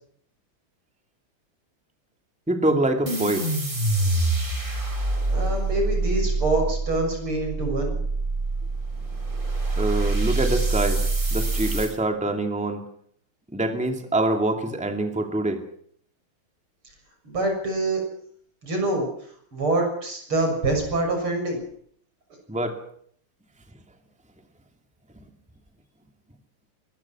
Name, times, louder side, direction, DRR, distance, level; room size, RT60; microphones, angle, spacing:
voice 1, 2.5-3.5 9.8-11.0 11.3-12.9 13.5-15.6 22.5-22.8, right 1 dB, 5° right, 5 dB, 2.5 m, -25 dB
sound 1, 3.1-11.9, right 2 dB, 20° right, 3.7 m, -25 dB
voice 2, 5.3-8.0 17.2-18.0 18.6-19.1 19.5-21.6, right 2 dB, 75° right, 3 dB, 7.6 m, -25 dB
23.5 x 21.0 x 6.2 m, 0.63 s
omnidirectional pair, 2.4 m